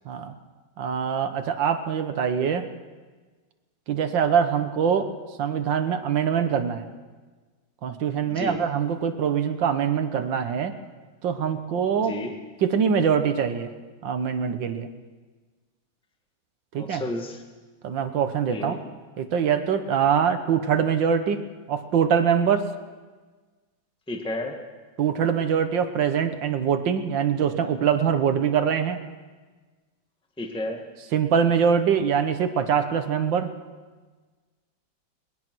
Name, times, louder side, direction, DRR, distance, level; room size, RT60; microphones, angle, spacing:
voice 1, 0.8-2.7 3.9-5.1 5.4-6.9 7.8-10.7 11.2-12.1 12.6-13.7 14.0-14.9 16.7-17.0 17.8-18.8 19.2-21.4 21.7-22.7 25.0-29.0 31.1-33.5, right 7 dB, 70° right, 9 dB, 1.7 m, -23 dB
voice 2, 8.3-8.6 12.0-12.3 16.8-17.4 18.5-18.8 24.1-24.6 30.4-30.8, left 2 dB, 5° left, 3 dB, 1.5 m, -32 dB
22.0 x 20.5 x 6.2 m, 1.4 s
omnidirectional pair, 2.2 m